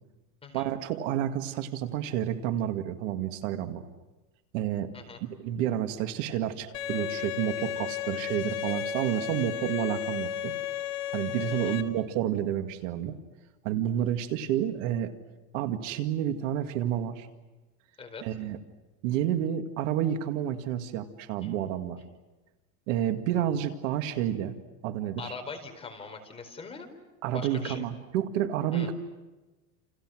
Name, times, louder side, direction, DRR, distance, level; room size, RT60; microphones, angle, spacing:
voice 1, 0.5-3.8 4.5-4.9 5.2-10.5 11.1-13.1 13.6-15.1 15.5-17.3 18.2-18.6 19.0-22.0 22.9-24.5 24.8-25.3 27.2-28.9, right 11 dB, 60° right, 7 dB, 2.3 m, -30 dB
Bowed string instrument, 6.7-11.8, left 9 dB, 50° left, 3.3 m, -33 dB
voice 2, 25.2-26.9 27.3-27.9 28.7-28.9, left 4 dB, 15° left, 4 dB, 4.3 m, -42 dB
29.5 x 29.5 x 6.3 m, 1.1 s
supercardioid pair, 160°, 42 cm